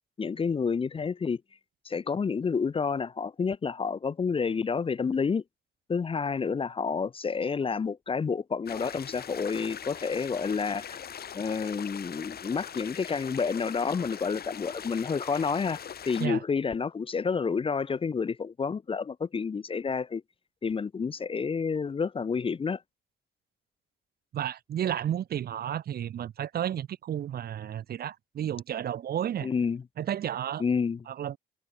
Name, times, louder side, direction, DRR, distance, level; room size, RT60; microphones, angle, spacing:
voice 1, 0.2-1.4 1.9-5.4 5.9-11.0 11.3-20.2 20.6-22.8 29.4-29.8 30.6-31.0, left 5 dB, 30° left, 0.5 m, -29 dB
sound 1, 8.7-16.3, left 8 dB, 50° left, 1.7 m, -41 dB
voice 2, 24.3-29.5 30.0-30.6 31.1-31.4, right 10 dB, 50° right, 0.6 m, -32 dB
cardioid pair, 90°, 20 cm